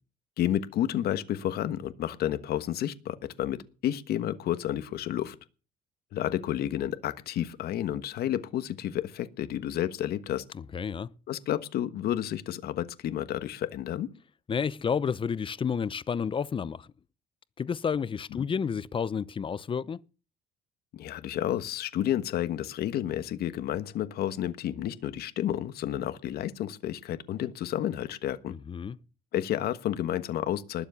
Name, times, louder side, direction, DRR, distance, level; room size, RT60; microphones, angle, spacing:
voice 1, 0.4-5.3 6.1-10.4 11.3-14.1 18.3-18.4 20.9-28.5 29.3-30.9, left 11 dB, 70° left, 1.3 m, -31 dB
voice 2, 10.7-11.1 14.5-16.9 17.6-20.0 28.5-29.0, left 6 dB, 30° left, 0.7 m, -30 dB
20.0 x 7.4 x 6.9 m
cardioid pair, 110°, 17 cm